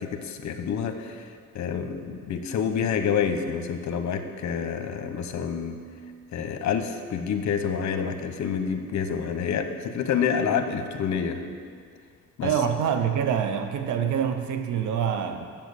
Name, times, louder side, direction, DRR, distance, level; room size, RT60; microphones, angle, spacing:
voice 1, 0.0-5.8 6.3-11.4 12.4-12.5, left 7 dB, 65° left, 7 dB, 1.0 m, -28 dB
voice 2, 12.4-15.5, right 8 dB, 75° right, 7 dB, 0.8 m, -26 dB
7.5 x 7.0 x 8.2 m, 2.1 s
cardioid pair, 90°, 30 cm